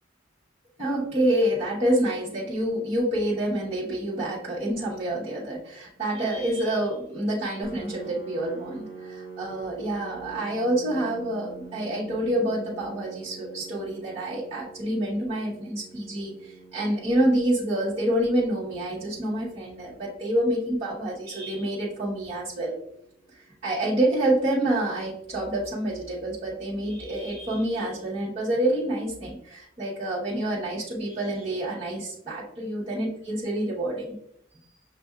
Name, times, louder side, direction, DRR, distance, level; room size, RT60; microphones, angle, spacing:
voice 1, 0.8-22.7 23.3-34.1, right 1 dB, 30° right, -9 dB, 1.0 m, -27 dB
Piano, 7.6-23.0, right 3 dB, 10° right, 0.8 m, -46 dB
6.3 x 2.5 x 2.3 m, 0.76 s
head